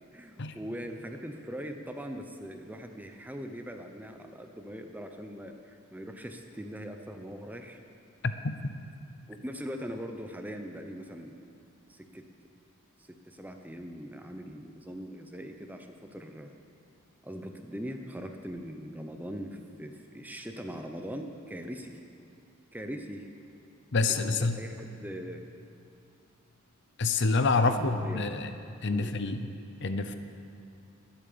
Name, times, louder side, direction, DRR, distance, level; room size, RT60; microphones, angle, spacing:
voice 1, 0.1-7.8 9.3-11.3 11.9-12.2 13.0-16.5 17.2-22.0 22.7-23.3 24.1-25.5 27.5-28.3 28.9-29.1, equal, 10° right, 5 dB, 0.8 m, -41 dB
voice 2, 23.9-24.6 27.0-28.5 28.8-29.5 29.8-30.1, left 3 dB, 55° left, 9 dB, 0.7 m, -27 dB
20.0 x 8.9 x 6.9 m, 2.6 s
head